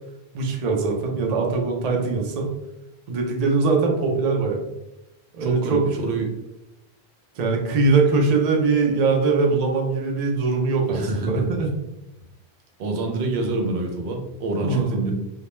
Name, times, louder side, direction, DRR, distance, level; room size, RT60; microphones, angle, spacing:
voice 1, 0.3-2.5 3.1-4.6 5.3-5.9 7.4-11.7 14.6-15.0, right 4 dB, 50° right, 1 dB, 0.5 m, -22 dB
voice 2, 5.4-6.3 10.9-11.6 12.8-15.1, right 2 dB, 85° right, 2 dB, 0.8 m, -27 dB
2.2 x 2.1 x 2.9 m, 0.91 s
omnidirectional pair, 1.1 m